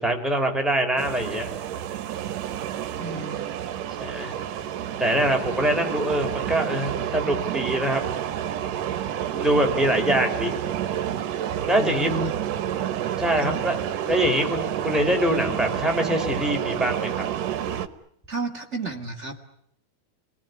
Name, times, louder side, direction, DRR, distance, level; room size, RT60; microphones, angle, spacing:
voice 1, 0.0-1.5 4.0-4.3 5.0-8.0 9.3-10.6 11.7-12.1 13.2-13.7 14.0-17.2, right 1 dB, ahead, 2 dB, 4.9 m, -24 dB
sound 1, 1.0-17.9, right 10 dB, 70° right, 2.7 m, -29 dB
voice 2, 3.0-3.6 11.8-12.3 13.4-13.7 18.3-19.4, right 2 dB, 25° right, 4 dB, 1.7 m, -32 dB
29.5 x 19.5 x 9.9 m, 0.73 s
omnidirectional pair, 4.2 m